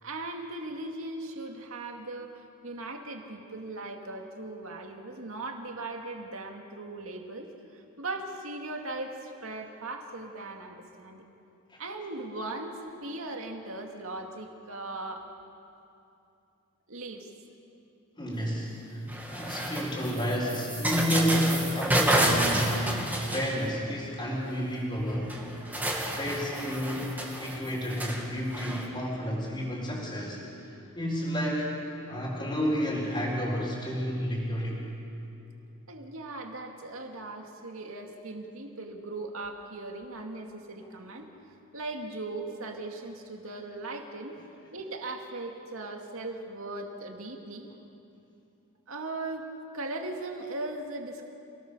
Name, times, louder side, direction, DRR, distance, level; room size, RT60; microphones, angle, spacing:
voice 1, 0.0-7.5 7.7-11.2 11.8-15.3 16.9-17.3 35.9-41.3 41.7-44.3 44.7-47.7 48.9-49.5 49.7-51.3, right 2 dB, 70° right, 3 dB, 2.4 m, -38 dB
voice 2, 18.2-25.4 26.1-31.7 32.1-34.8, equal, 20° left, -5 dB, 4.2 m, -31 dB
sound 1, 19.1-23.9 25.0-25.1 25.3-28.8, right 1 dB, 10° right, 2.3 m, -30 dB
28.0 x 18.0 x 6.8 m, 2.7 s
head